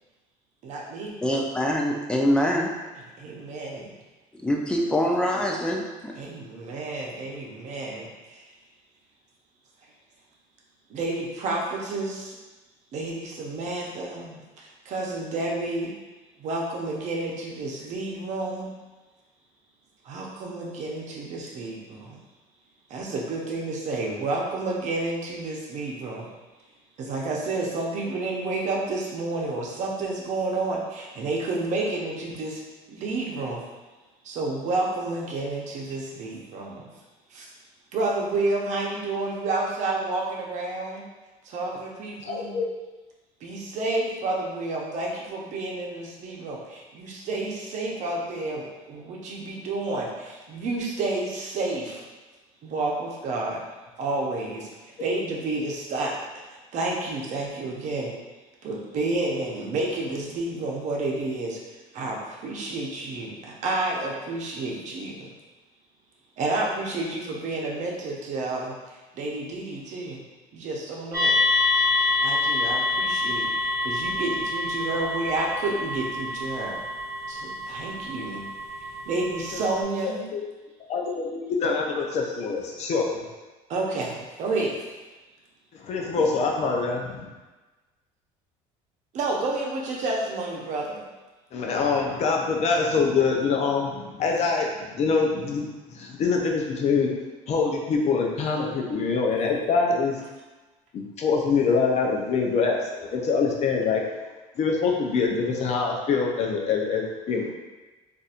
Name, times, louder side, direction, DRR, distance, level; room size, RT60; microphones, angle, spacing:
voice 1, 0.6-1.2 3.2-4.0 6.1-8.4 10.9-12.4 12.9-15.9 16.4-18.7 20.0-22.2 22.9-26.3 27.0-32.6 32.9-33.6 34.2-36.9 37.3-37.5 37.9-41.0 41.4-42.6 43.4-52.0 52.6-53.6 54.0-56.1 56.5-58.2 58.6-65.3 66.4-70.2 70.5-71.4 72.2-76.8 77.3-78.5 79.1-80.2 83.7-84.8 89.1-91.1, right 2 dB, 55° right, -2 dB, 0.8 m, -30 dB
voice 2, 1.2-2.7 4.4-6.1, equal, 5° left, -1 dB, 0.5 m, -24 dB
voice 3, 42.2-42.7 79.5-79.6 80.3-80.5 80.9-83.2 85.7-87.3 91.5-95.7 95.9-97.1 97.5-100.2 100.9-104.0 104.6-107.5, left 4 dB, 50° left, 0 dB, 0.7 m, -24 dB
sound 1, 71.1-79.8, left 2 dB, 20° right, 1.0 m, -27 dB
4.0 x 2.6 x 2.5 m, 1.2 s
supercardioid pair, 100°, 15 cm